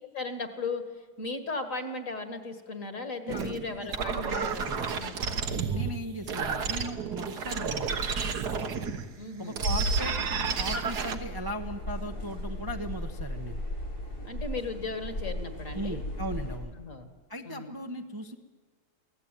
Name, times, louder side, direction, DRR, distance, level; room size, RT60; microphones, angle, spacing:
voice 1, 0.0-4.6 5.0-5.1 9.2-9.6 14.2-16.0 16.7-17.1 17.5-17.7, left 3 dB, 50° left, 8 dB, 2.2 m, -36 dB
sound 1, 3.3-9.0 9.5-11.2, right 5 dB, 70° right, 1.8 m, -31 dB
voice 2, 4.1-5.0 5.5-8.0 9.4-10.2 10.5-13.6 15.7-16.7 17.3-18.3, equal, 20° right, 4 dB, 0.7 m, -38 dB
sound 2, 9.9-16.6, left 1 dB, 85° left, 7.5 m, -37 dB
24.0 x 17.0 x 9.1 m, 1.4 s
omnidirectional pair, 1.8 m